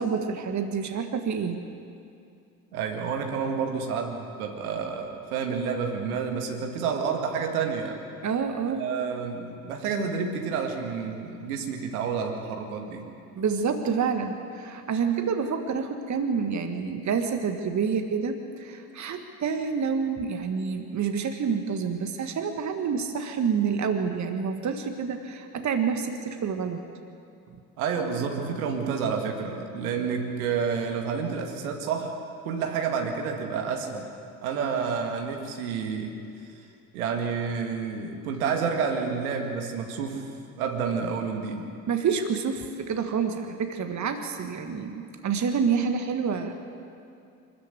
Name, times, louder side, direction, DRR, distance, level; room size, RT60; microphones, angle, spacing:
voice 1, 0.0-1.6 8.2-8.9 13.4-26.8 41.9-46.5, right 6 dB, 40° right, 6 dB, 1.7 m, -28 dB
voice 2, 2.7-8.0 8.8-13.1 27.8-32.2 32.4-34.1 34.4-36.1 36.9-40.3 40.6-41.7, right 6 dB, 75° right, 3 dB, 2.1 m, -29 dB
24.5 x 14.0 x 8.4 m, 2.5 s
figure-of-eight pair, 55°, 44 cm